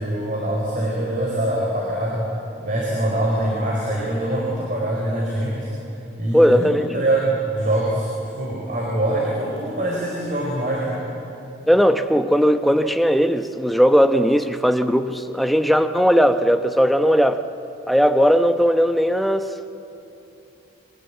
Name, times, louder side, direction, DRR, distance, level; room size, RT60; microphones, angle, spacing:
voice 1, 0.0-2.3 2.6-5.7 6.2-6.6 6.9-8.1 8.3-11.0, right 1 dB, 40° right, -3 dB, 4.6 m, -23 dB
voice 2, 6.3-6.9 11.7-17.4 17.9-19.7, equal, ahead, 7 dB, 0.9 m, -18 dB
29.5 x 23.0 x 8.5 m, 2.9 s
head